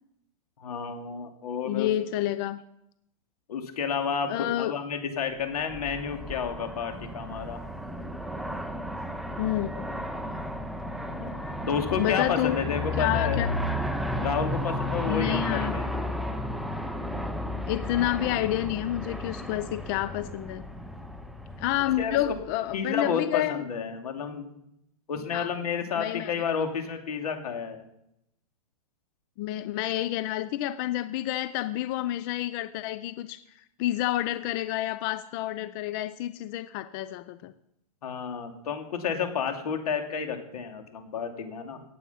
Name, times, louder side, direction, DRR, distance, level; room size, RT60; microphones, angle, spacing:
voice 1, 0.6-1.9 3.5-7.6 11.1-13.4 14.2-16.1 22.0-22.2 22.7-24.5 25.1-27.8 38.0-41.8, left 6 dB, 85° left, 5 dB, 2.7 m, -31 dB
voice 2, 1.6-2.6 4.3-4.7 9.4-9.9 12.0-12.6 13.0-13.5 15.1-15.8 17.7-20.6 21.6-23.6 25.3-25.5 26.0-26.3 29.4-33.4 33.8-37.5, left 14 dB, 35° left, 13 dB, 0.5 m, -29 dB
Aircraft, 5.5-22.7, left 1 dB, ahead, 0.7 m, -33 dB
17.5 x 8.3 x 5.7 m, 0.80 s
hypercardioid pair, 150°, 19 cm